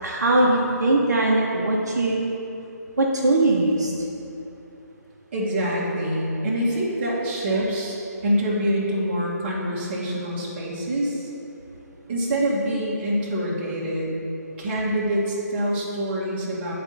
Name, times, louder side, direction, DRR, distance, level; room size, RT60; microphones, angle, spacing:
voice 1, 0.0-2.2 3.0-3.9, right 2 dB, 75° right, -2 dB, 0.9 m, -20 dB
voice 2, 5.3-8.0 8.2-11.3 12.1-14.1 14.6-16.7, equal, 40° right, -4 dB, 1.7 m, -25 dB
9.9 x 4.4 x 4.0 m, 2.9 s
figure-of-eight pair, 145°, 9 cm